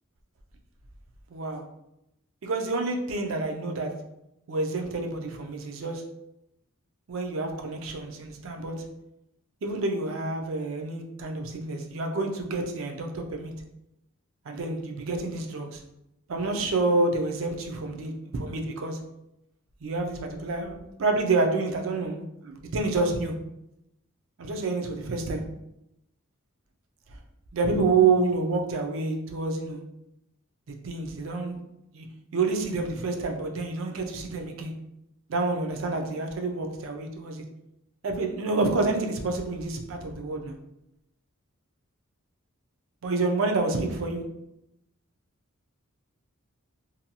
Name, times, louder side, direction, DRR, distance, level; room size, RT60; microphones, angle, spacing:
voice 1, 1.3-1.6 2.4-3.9 4.5-6.0 7.1-8.8 9.6-13.5 14.5-15.8 16.3-19.0 19.8-23.3 24.4-25.4 27.5-29.8 30.7-31.6 31.9-32.1 32.3-34.7 35.3-37.4 38.0-40.6 43.0-44.2, right 3 dB, 65° right, 3 dB, 0.4 m, -28 dB
2.7 x 2.2 x 2.7 m, 0.85 s
head